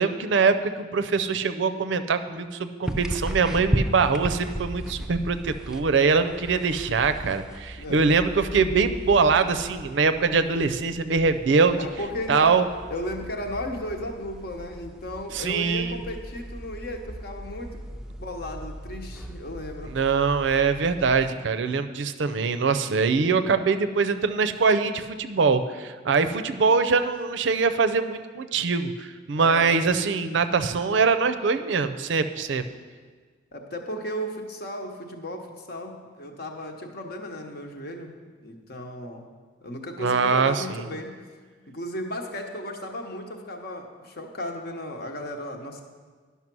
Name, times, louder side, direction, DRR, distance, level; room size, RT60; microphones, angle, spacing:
voice 1, 0.0-11.8 12.3-12.7 15.3-16.0 19.9-32.6 40.0-40.8, right 4 dB, 70° right, 9 dB, 0.5 m, -23 dB
sound 1, 2.8-21.3, right 1 dB, 5° right, 0.4 m, -36 dB
voice 2, 11.8-12.6 12.9-17.8 18.2-20.0 29.4-29.8 33.5-38.2 38.4-39.2 39.6-41.2 41.7-45.8, left 1 dB, 55° left, 4 dB, 1.0 m, -35 dB
11.0 x 5.7 x 6.0 m, 1.5 s
head